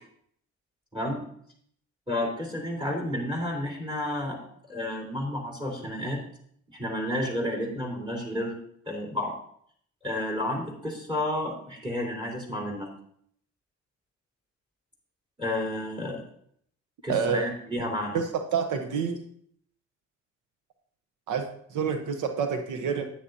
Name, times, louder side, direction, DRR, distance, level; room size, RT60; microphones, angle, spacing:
voice 1, 0.9-1.3 2.1-4.4 4.7-6.2 6.7-8.6 8.9-9.3 10.0-12.9 15.4-16.2 17.0-18.2, left 1 dB, 15° right, -1 dB, 3.8 m, -31 dB
voice 2, 17.1-17.4 18.1-18.2 18.5-19.2 21.3-23.1, right 6 dB, 85° right, 6 dB, 1.0 m, -28 dB
9.8 x 9.6 x 2.7 m, 0.65 s
cardioid pair, 90°, 30 cm